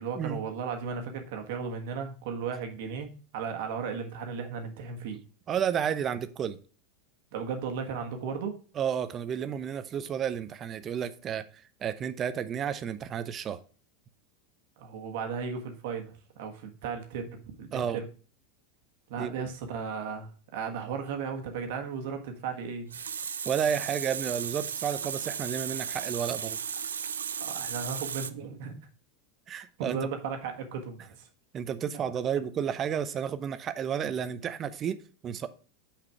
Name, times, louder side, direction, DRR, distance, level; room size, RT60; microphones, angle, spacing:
voice 1, 0.0-5.2 7.3-8.6 14.8-18.1 19.1-22.9 27.4-28.8 29.8-31.3, right 6 dB, 65° right, 5 dB, 1.5 m, -35 dB
voice 2, 5.5-6.6 8.8-13.6 17.7-18.0 19.2-19.5 23.4-26.6 29.5-30.0 31.5-35.0 35.2-35.5, right 8 dB, 35° right, 13 dB, 0.7 m, -31 dB
Water tap faucet, 22.6-28.3, right 7 dB, 85° right, 0.4 m, -35 dB
6.0 x 5.0 x 4.6 m, 0.39 s
hypercardioid pair, 90°, 0 cm